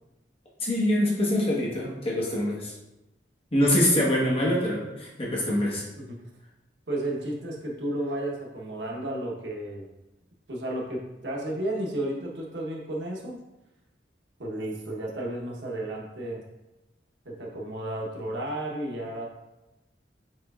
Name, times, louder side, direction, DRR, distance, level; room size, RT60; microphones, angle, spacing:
voice 1, 0.6-2.7 3.5-5.8, left 1 dB, 35° left, -4 dB, 1.2 m, -24 dB
voice 2, 6.9-9.9 10.5-13.4 14.4-16.4 17.2-19.2, right 1 dB, 80° right, -2 dB, 1.0 m, -33 dB
6.3 x 3.4 x 2.4 m, 0.97 s
head